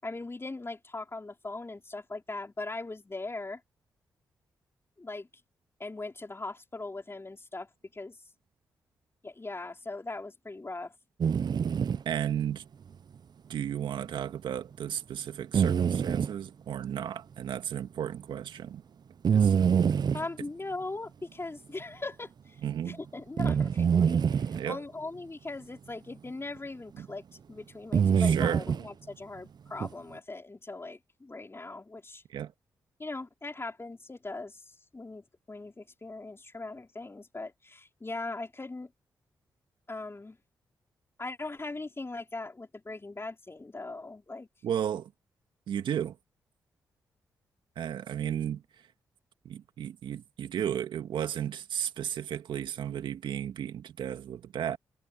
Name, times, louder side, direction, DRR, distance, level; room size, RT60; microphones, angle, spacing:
voice 1, 0.0-3.6 5.0-5.3 5.8-8.2 9.2-10.9 20.1-32.2 33.0-38.9 39.9-40.4 41.2-44.5, left 3 dB, 30° left, 4.7 m, -40 dB
sound 1, 11.2-12.0 15.5-16.3 19.2-20.3 23.4-24.6 26.6-26.7 27.9-28.9 29.8-29.9, right 7 dB, 55° right, 0.7 m, -25 dB
voice 2, 12.1-12.6 13.5-18.8 19.3-19.5 22.6-23.0 24.6-24.8 27.0-27.1 28.2-28.6 32.3-32.5 44.6-45.1 45.7-46.2 47.8-48.6 49.4-54.8, right 9 dB, 75° right, 2.2 m, -34 dB
hypercardioid pair, 40°, 8 cm